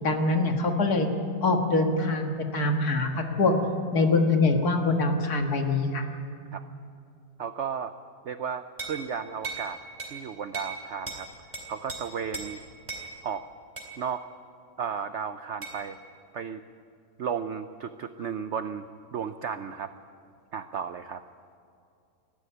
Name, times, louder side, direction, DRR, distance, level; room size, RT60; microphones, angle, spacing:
voice 1, 0.0-1.1 1.4-3.6 3.9-6.0, left 3 dB, 60° left, 4 dB, 2.1 m, -24 dB
voice 2, 7.4-7.9 8.2-9.8 10.1-11.3 11.7-12.6 13.2-13.4 14.0-14.3 14.8-16.0 16.3-16.6 17.2-18.9 19.1-19.9 20.5-21.2, right 7 dB, 70° right, 10 dB, 0.6 m, -34 dB
sound 1, 8.8-9.0 9.4-9.7 10.0-10.2 10.5-10.8 11.1-11.2 11.5-12.0 12.3-12.5 12.9-13.1 13.8-13.9 15.6-15.8, right 4 dB, 20° right, 3.8 m, -36 dB
19.5 x 14.5 x 10.0 m, 2.4 s
omnidirectional pair, 1.9 m